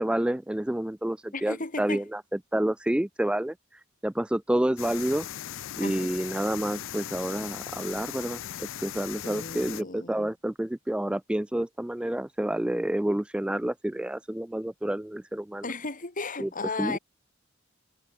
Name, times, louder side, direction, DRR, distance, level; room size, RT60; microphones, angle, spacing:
voice 1, 0.0-2.2 2.5-5.3 5.8-15.7 16.4-16.5 16.8-17.0, right 1 dB, 5° right, 0.3 m, -29 dB
voice 2, 1.3-2.0 5.8-6.1 9.2-10.3 15.6-17.0, left 3 dB, 40° left, 2.8 m, -35 dB
Waterfall Loop, 4.8-9.8, left 11 dB, 65° left, 0.5 m, -38 dB
head